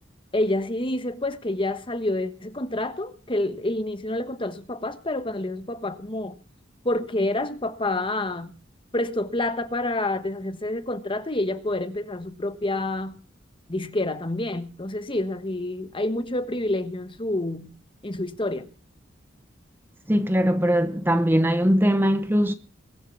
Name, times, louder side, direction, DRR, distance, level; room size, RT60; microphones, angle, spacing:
voice 1, 0.3-6.4 6.8-8.5 8.9-13.2 13.7-17.7 18.0-18.7, left 1 dB, 30° left, 1.2 m, -28 dB
voice 2, 20.1-22.5, equal, 10° right, 0.8 m, -21 dB
22.0 x 7.5 x 6.1 m
head